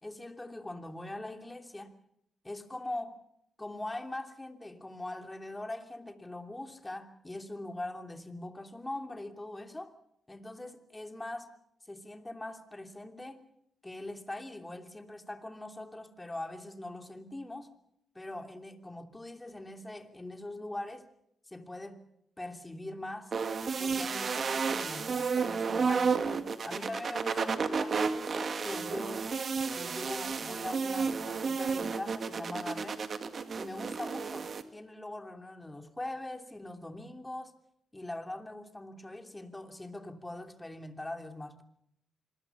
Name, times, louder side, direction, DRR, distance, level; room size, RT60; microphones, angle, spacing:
voice 1, 0.0-1.9 2.4-3.2 3.6-9.9 10.3-11.5 11.9-13.4 13.8-17.7 18.1-21.1 21.5-22.0 22.4-23.3 23.8-29.3 29.7-33.0 33.5-37.5 37.9-41.6, left 1 dB, 15° left, 2.9 m, -42 dB
sound 1, 23.3-34.6, right 5 dB, 55° right, 2.0 m, -32 dB
26.5 x 20.5 x 7.1 m
supercardioid pair, 60°, 0 cm